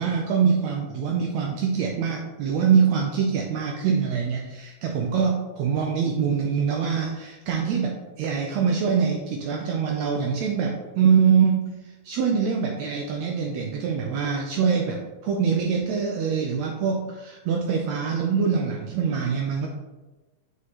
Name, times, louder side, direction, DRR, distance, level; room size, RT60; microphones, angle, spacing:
voice 1, 0.0-19.7, right 6 dB, 85° right, 1 dB, 1.6 m, -24 dB
6.3 x 5.5 x 2.9 m, 1.2 s
omnidirectional pair, 3.8 m